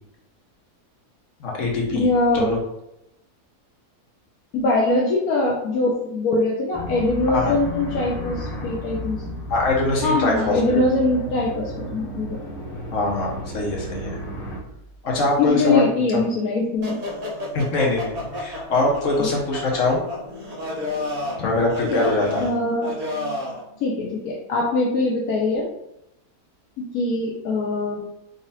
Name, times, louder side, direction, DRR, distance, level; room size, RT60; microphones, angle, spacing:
voice 1, 1.4-2.1 2.3-2.6 7.3-7.5 9.5-10.8 12.9-14.1 15.0-15.9 17.5-20.0 21.4-22.4, left 2 dB, 55° left, -1 dB, 1.4 m, -23 dB
voice 2, 1.9-2.5 4.5-9.2 10.0-12.4 15.4-17.0 21.4-21.5 21.9-22.1 22.4-22.9 23.8-25.7 26.9-28.0, left 2 dB, 75° left, -2 dB, 1.2 m, -22 dB
sound 1, 6.7-14.6, equal, ahead, 0.9 m, -33 dB
sound 2, 16.8-23.6, left 1 dB, 30° right, 1.1 m, -31 dB
4.0 x 3.0 x 4.0 m, 0.83 s
omnidirectional pair, 1.6 m